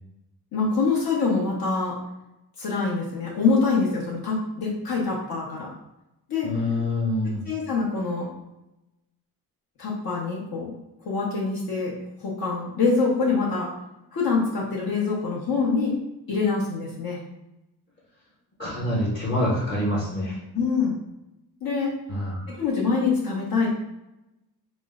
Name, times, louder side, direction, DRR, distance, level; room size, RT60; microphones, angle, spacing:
voice 1, 0.5-2.0 2.6-5.7 6.3-6.5 7.5-8.3 9.8-10.7 11.0-11.9 12.2-13.7 14.1-15.9 16.3-17.2 20.5-21.0 21.6-21.9 22.6-23.8, left 4 dB, 60° left, -5 dB, 0.9 m, -25 dB
voice 2, 6.4-7.4 18.6-20.4 22.1-22.6, left 1 dB, 30° left, -7 dB, 0.8 m, -26 dB
4.3 x 2.1 x 3.5 m, 0.91 s
wide cardioid pair, 160°, 39 cm